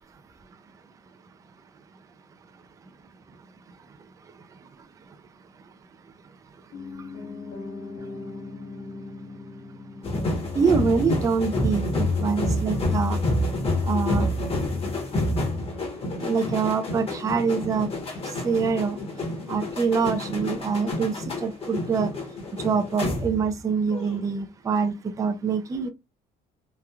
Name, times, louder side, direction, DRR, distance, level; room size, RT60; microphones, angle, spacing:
Piano, 6.7-16.7 17.0-17.1, left 3 dB, 70° left, 1.1 m, -42 dB
sound 1, 10.0-23.6 23.9-24.2, left 1 dB, 35° left, 1.0 m, -28 dB
voice 1, 10.5-13.2 13.9-14.3 16.2-17.9 18.4-19.0 19.5-22.1 22.6-25.9, right 5 dB, 20° right, 0.4 m, -25 dB
2.9 x 2.3 x 2.3 m
cardioid pair, 110°, 17 cm